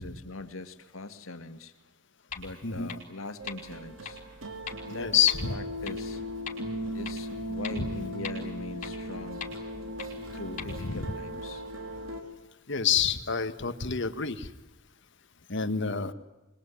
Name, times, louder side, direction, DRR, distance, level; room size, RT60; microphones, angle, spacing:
voice 1, 0.0-1.7 2.3-4.2 4.9-5.1 5.5-6.2 6.9-9.4 10.3-11.6, left 2 dB, 85° left, 9 dB, 2.2 m, -41 dB
sound 1, 2.3-2.4 2.9-3.0 3.5-3.6 4.0-4.1 4.7-4.8 5.3-5.4 5.9-6.0 6.5-6.6 7.0-7.1 7.6-7.7 8.2-8.3 8.8-8.9 9.4-9.5 10.0-10.1 10.6-10.7, left 7 dB, 40° left, 5.0 m, -38 dB
sound 2, 3.4-12.2, equal, 80° right, 4.0 m, -38 dB
voice 2, 4.9-5.6 7.8-7.9 10.8-11.0 12.7-14.5 15.5-16.1, left 7 dB, 60° left, 10 dB, 1.7 m, -27 dB
25.5 x 22.0 x 9.8 m, 1.0 s
head